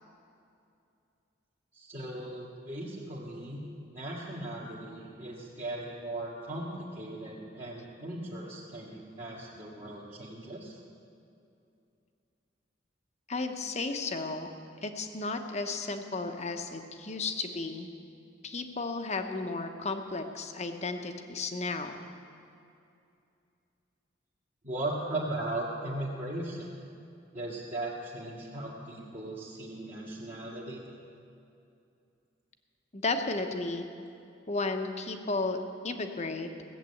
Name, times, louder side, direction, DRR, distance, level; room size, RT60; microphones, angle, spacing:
voice 1, 1.7-10.7 24.6-26.7 27.3-30.8, right 1 dB, 40° right, -8 dB, 1.8 m, -38 dB
voice 2, 13.3-14.5 14.8-17.9 18.4-22.0 32.9-33.9 34.5-35.6 35.8-36.5, left 3 dB, 35° left, 6 dB, 0.9 m, -33 dB
16.5 x 7.5 x 8.4 m, 2.6 s
head